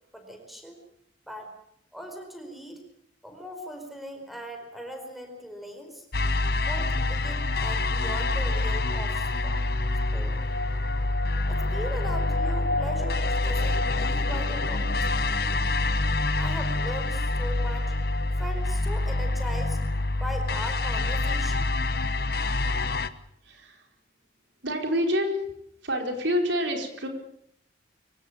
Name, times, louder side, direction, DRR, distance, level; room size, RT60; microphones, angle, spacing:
voice 1, 0.1-0.8 1.3-1.5 1.9-2.8 3.2-6.1 6.5-9.6 10.1-10.4 11.5-15.5 16.3-17.9 18.4-19.8 20.1-21.7, equal, ahead, 4 dB, 4.6 m, -39 dB
sound 1, 6.1-23.1, left 2 dB, 55° left, 1.2 m, -26 dB
voice 2, 23.4-23.9 24.6-25.4 25.8-27.1, equal, 80° right, 4 dB, 4.8 m, -27 dB
24.0 x 17.5 x 8.8 m, 0.71 s
head